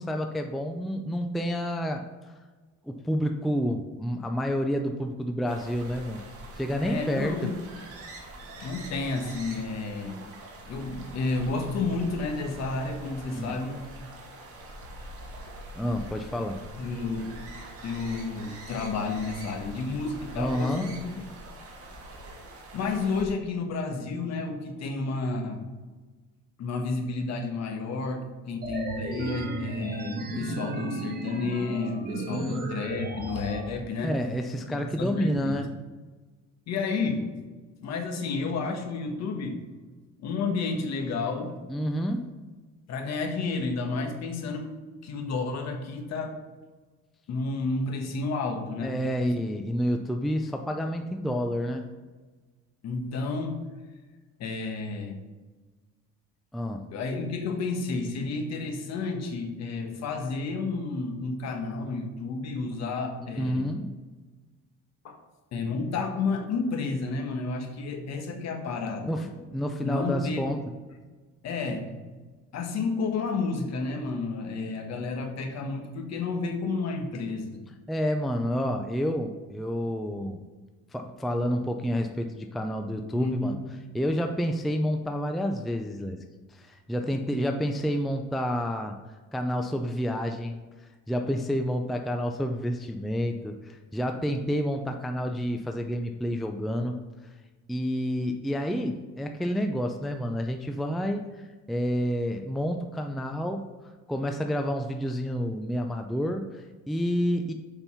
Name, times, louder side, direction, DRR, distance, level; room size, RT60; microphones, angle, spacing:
voice 1, 0.0-2.0 2.8-6.2 6.5-7.5 13.4-13.5 15.8-16.6 20.4-20.9 32.3-32.7 34.0-35.7 41.7-42.3 48.8-51.9 56.5-56.9 63.4-63.9 69.0-70.6 77.9-80.4 80.9-83.6 83.9-86.2 86.5-88.9 89.3-90.6 91.1-97.0 97.7-101.2 101.7-103.7 104.1-107.5, equal, ahead, 4 dB, 0.4 m, -29 dB
sound 1, 5.4-23.2, right 1 dB, 45° right, 2.1 m, -44 dB
voice 2, 6.7-7.6 8.6-10.2 10.7-13.8 16.8-17.3 17.8-21.1 22.7-25.7 26.6-34.1 34.7-35.6 36.7-37.3 37.8-39.6 40.2-41.6 42.9-44.7 45.0-46.4 47.3-49.0 52.8-53.7 54.4-55.2 56.9-63.6 65.0-65.2 65.5-69.3 69.8-70.7 71.4-72.0 72.5-77.6 83.1-83.6, left 3 dB, 55° left, 4 dB, 1.5 m, -31 dB
sound 2, 28.6-33.6, right 2 dB, 30° right, 1.3 m, -34 dB
7.2 x 5.3 x 5.6 m, 1.3 s
cardioid pair, 140°, 32 cm